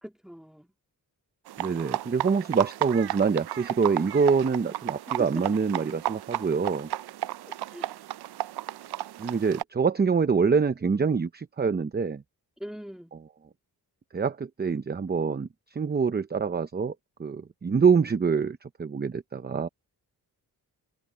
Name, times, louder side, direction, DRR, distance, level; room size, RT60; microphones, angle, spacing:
voice 1, 0.0-0.7 5.2-5.3 7.4-7.9 12.6-13.1, equal, ahead, 2.9 m, -42 dB
sound 1, 1.5-9.6, right 13 dB, 75° right, 0.5 m, -34 dB
voice 2, 1.6-6.9 9.2-12.2 14.1-16.9 17.2-19.7, right 5 dB, 25° right, 0.7 m, -25 dB
wide cardioid pair, 110°, 39 cm